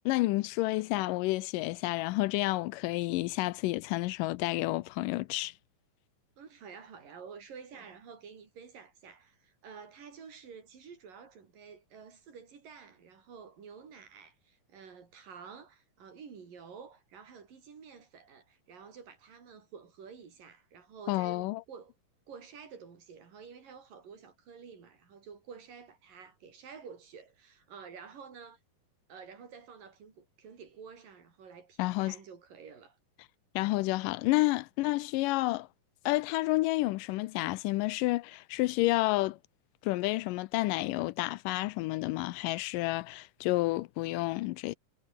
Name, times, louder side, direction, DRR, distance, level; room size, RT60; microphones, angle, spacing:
voice 1, 0.1-5.5 21.1-21.6 31.8-32.1 33.6-35.7 36.1-39.4 39.8-44.7, left 19 dB, 90° left, 2.3 m, -30 dB
voice 2, 6.4-21.9 22.3-28.6 29.1-33.0, right 6 dB, 90° right, 5.8 m, -50 dB
omnidirectional pair, 3.8 m